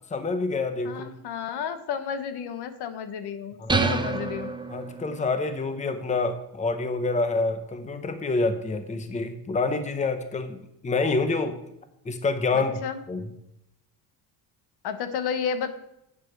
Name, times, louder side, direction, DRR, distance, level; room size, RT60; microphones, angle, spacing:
voice 1, 0.1-1.1 3.6-3.9 4.7-11.6 12.0-12.8 13.1-13.3, left 3 dB, 15° left, 8 dB, 0.9 m, -27 dB
voice 2, 0.8-4.5 12.5-13.0 14.8-15.7, left 7 dB, 60° left, 9 dB, 1.1 m, -32 dB
sound 1, 3.7-5.3, right 4 dB, 10° right, 0.6 m, -27 dB
8.1 x 6.1 x 5.9 m, 0.81 s
supercardioid pair, 90°, 44 cm